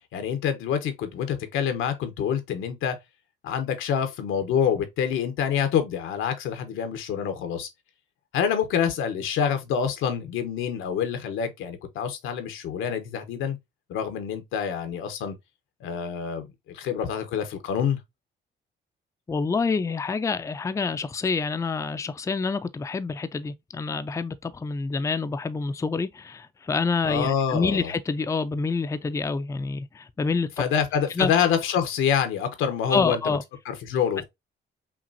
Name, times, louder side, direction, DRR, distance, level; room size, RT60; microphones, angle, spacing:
voice 1, 0.1-3.0 3.4-7.7 8.3-13.6 13.9-15.3 15.8-18.0 27.0-27.9 30.6-33.4 33.6-34.2, left 8 dB, 85° left, 1.0 m, -26 dB
voice 2, 19.3-30.5 31.2-31.3 32.9-33.4, left 4 dB, 15° left, 0.4 m, -27 dB
5.8 x 2.4 x 2.6 m
cardioid pair, 90°, 20 cm